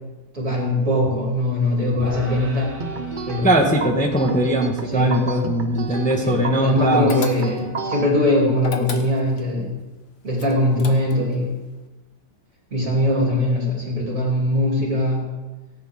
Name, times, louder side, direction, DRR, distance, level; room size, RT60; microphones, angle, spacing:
voice 1, 0.3-2.7 3.3-3.5 4.9-5.1 6.2-9.7 10.2-11.5 12.7-15.2, left 1 dB, 40° right, -2 dB, 3.4 m, -21 dB
sound 1, 2.0-8.4, right 2 dB, 25° right, 2.6 m, -42 dB
sound 2, 2.8-8.1, right 4 dB, 70° right, 0.4 m, -31 dB
voice 2, 3.4-7.1, right 1 dB, 5° left, 1 dB, 1.0 m, -20 dB
sound 3, 7.1-7.8 8.6-9.5 10.4-11.4, left 5 dB, 40° left, 1.0 m, -33 dB
17.5 x 9.5 x 3.7 m, 1.2 s
omnidirectional pair, 2.2 m